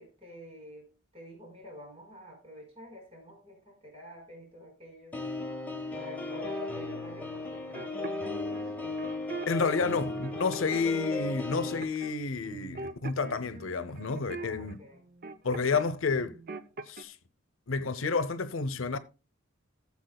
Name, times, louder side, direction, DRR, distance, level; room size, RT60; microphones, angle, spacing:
voice 1, 0.0-5.2 5.9-8.9 9.7-9.9 14.3-15.0, left 1 dB, 30° right, 4.8 m, -48 dB
sound 1, 5.1-11.8, left 2 dB, 10° left, 1.3 m, -36 dB
sound 2, 7.7-9.5 9.9-11.2 11.8-12.2 12.4-15.9 16.2-17.0, right 4 dB, 50° right, 0.6 m, -42 dB
voice 2, 9.5-14.8 15.4-16.4 16.9-17.1 17.7-19.0, left 4 dB, 80° left, 0.7 m, -30 dB
17.5 x 7.2 x 2.3 m
head